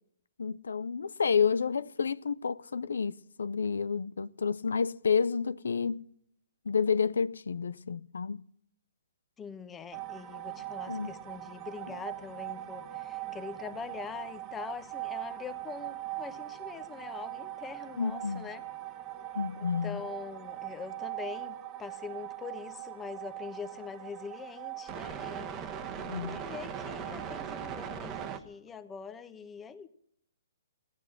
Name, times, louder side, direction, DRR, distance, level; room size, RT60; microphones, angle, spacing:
voice 1, 0.4-6.1 6.7-8.4 10.9-11.1 18.0-18.4 19.3-20.0 26.0-26.4, left 6 dB, 80° left, 0.5 m, -30 dB
voice 2, 9.4-18.6 19.8-25.5 26.2-29.9, left 6 dB, 15° left, 1.1 m, -43 dB
sound 1, 9.9-28.4, right 11 dB, 25° right, 1.3 m, -40 dB
16.5 x 10.5 x 7.7 m
hypercardioid pair, 145°, 0 cm